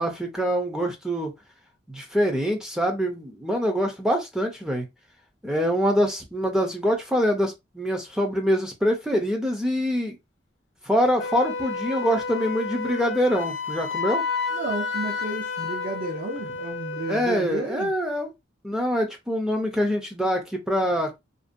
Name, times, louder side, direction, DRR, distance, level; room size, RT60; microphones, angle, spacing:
voice 1, 0.0-1.3 1.9-4.8 5.4-10.2 10.8-14.2 17.1-18.3 18.6-21.2, equal, 5° right, 0.4 m, -25 dB
Wind instrument woodwind instrument, 11.2-17.5, left 4 dB, 70° left, 0.5 m, -31 dB
voice 2, 14.5-17.9, right 2 dB, 55° right, 0.7 m, -32 dB
2.5 x 2.2 x 2.5 m
head